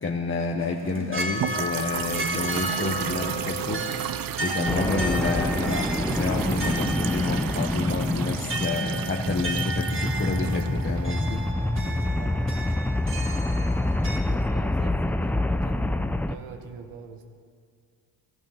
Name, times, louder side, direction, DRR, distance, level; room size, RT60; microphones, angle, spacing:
voice 1, 0.0-4.1 4.4-11.4, left 3 dB, 25° left, 0 dB, 1.2 m, -29 dB
sound 1, 0.6-14.2, right 1 dB, 25° right, 1.8 m, -34 dB
sound 2, 1.3-11.5, right 12 dB, 45° right, 0.5 m, -34 dB
sound 3, 4.6-16.3, left 1 dB, 5° left, 0.4 m, -27 dB
voice 2, 11.6-12.5 14.1-17.2, right 5 dB, 80° right, 6 dB, 1.7 m, -42 dB
17.0 x 12.5 x 5.8 m, 2.1 s
supercardioid pair, 75°, 49 cm